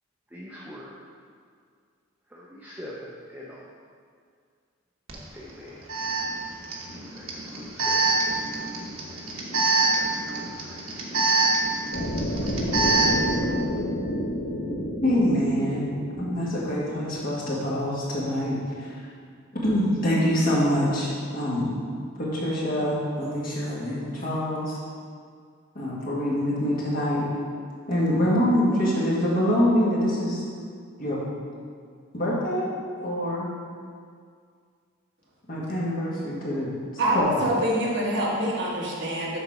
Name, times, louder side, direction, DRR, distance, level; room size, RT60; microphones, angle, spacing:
voice 1, 0.3-1.0 2.3-3.6 5.3-5.8 7.1-8.4 9.9-10.8, equal, 10° right, -6 dB, 0.6 m, -43 dB
Alarm, 5.1-5.2 5.9-13.3, right 3 dB, 75° right, 1.2 m, -25 dB
sound 1, 11.9-18.0, left 1 dB, 80° left, 0.9 m, -30 dB
voice 2, 15.0-15.9 16.2-19.0 19.5-21.7 22.2-24.8 25.7-27.3 27.9-30.4 31.0-31.2 32.1-32.7 33.0-33.5 35.5-36.7 37.1-37.3, equal, 45° left, -6 dB, 1.8 m, -25 dB
voice 3, 37.0-39.4, right 1 dB, 55° right, -4 dB, 1.4 m, -25 dB
6.9 x 4.2 x 5.9 m, 2.1 s
head